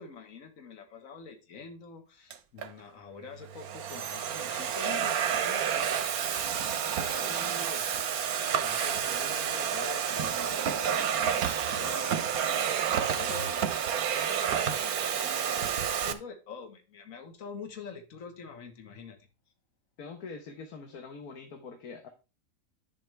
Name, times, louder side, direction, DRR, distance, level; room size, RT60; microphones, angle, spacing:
voice 1, 0.0-5.6 7.0-8.1 8.6-19.2, left 5 dB, 65° left, 5 dB, 1.8 m, -46 dB
Domestic sounds home sounds, 2.3-2.7 3.4-16.1, right 8 dB, 80° right, 1.4 m, -30 dB
voice 2, 7.0-7.3 20.0-22.1, left 4 dB, 85° left, 4 dB, 1.7 m, -43 dB
10.0 x 7.3 x 3.4 m, 0.30 s
omnidirectional pair, 1.5 m